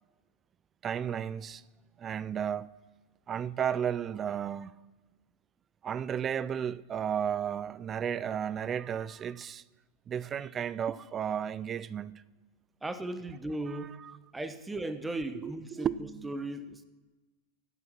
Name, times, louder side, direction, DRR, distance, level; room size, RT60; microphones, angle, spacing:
voice 1, 0.8-1.6 2.0-2.7 3.3-4.7 5.8-9.6 10.1-12.1 13.7-14.2 15.3-16.3, right 8 dB, 30° right, 0.4 m, -33 dB
voice 2, 12.8-14.0 14.3-15.9 16.2-16.8, right 2 dB, 10° right, 1.0 m, -36 dB
12.0 x 7.7 x 6.0 m
hypercardioid pair, 105°, 0 cm